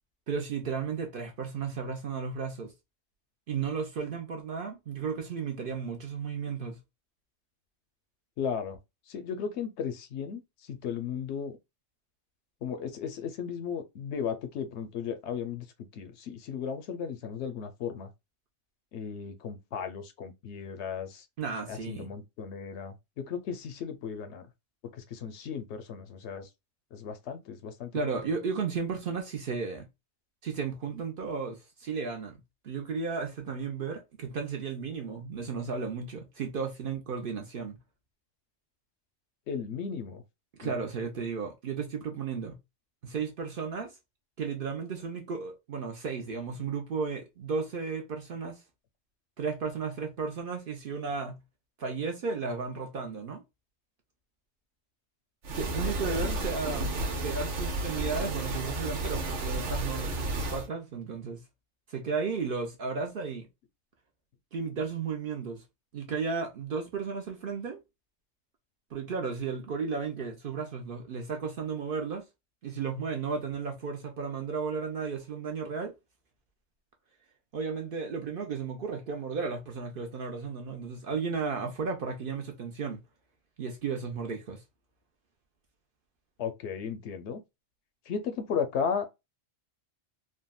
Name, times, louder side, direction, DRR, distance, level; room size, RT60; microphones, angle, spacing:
voice 1, 0.3-2.7 3.5-6.8 21.4-22.1 27.9-29.9 30.4-32.3 32.6-37.8 40.6-42.5 43.0-43.9 44.4-48.6 49.4-51.4 51.8-53.4 55.5-56.9 57.2-61.4 61.9-63.5 64.5-65.6 65.9-67.8 68.9-72.2 72.6-75.9 77.5-83.0 83.6-84.6, right 5 dB, 55° right, 0.7 m, -34 dB
voice 2, 8.4-8.8 9.1-10.4 10.7-11.6 12.6-15.7 15.9-18.1 18.9-21.2 21.7-24.5 24.9-26.5 26.9-28.2 39.5-40.2 40.6-40.7 56.0-56.4 56.6-56.9 86.4-87.4 88.1-89.1, left 7 dB, 70° left, 0.8 m, -35 dB
sound 1, 55.4-60.7, right 2 dB, 75° right, 1.2 m, -32 dB
3.5 x 2.1 x 2.2 m
omnidirectional pair, 1.3 m